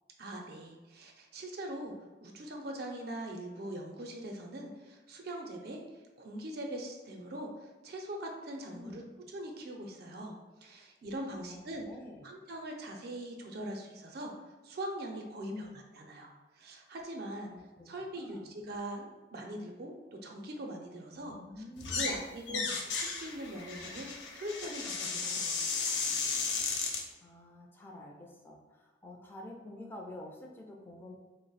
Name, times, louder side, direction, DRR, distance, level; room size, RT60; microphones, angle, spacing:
voice 1, 0.2-1.9 2.2-9.0 9.3-10.3 10.6-11.9 12.2-14.3 14.6-15.7 15.9-17.5 17.9-21.3 21.9-25.9, right 1 dB, 60° right, 2 dB, 0.5 m, -42 dB
voice 2, 8.7-9.1 11.3-12.3 15.4-15.8 17.5-17.9 18.1-18.5 21.1-22.1 22.5-22.8 27.2-31.1, left 2 dB, 15° left, -1 dB, 0.4 m, -48 dB
sound 1, 21.8-22.2 22.5-27.0, left 4 dB, 85° left, 0.5 m, -34 dB
3.0 x 2.0 x 4.0 m, 1.2 s
head